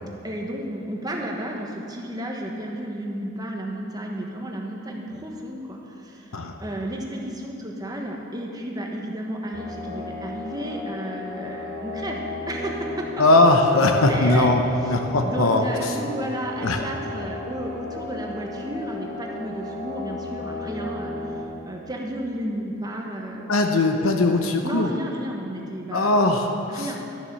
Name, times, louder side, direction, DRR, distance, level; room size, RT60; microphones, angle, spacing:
voice 1, 0.2-13.1 14.1-14.5 15.2-21.1 21.6-23.5 24.6-26.1 26.7-27.0, right 1 dB, 20° right, 0 dB, 1.3 m, -32 dB
sound 1, 9.5-21.4, left 2 dB, 65° left, 2.5 m, -35 dB
voice 2, 13.2-16.0 16.6-16.8 23.5-24.9 25.9-26.9, left 2 dB, 85° left, 4 dB, 0.9 m, -20 dB
12.5 x 7.2 x 6.8 m, 2.7 s
head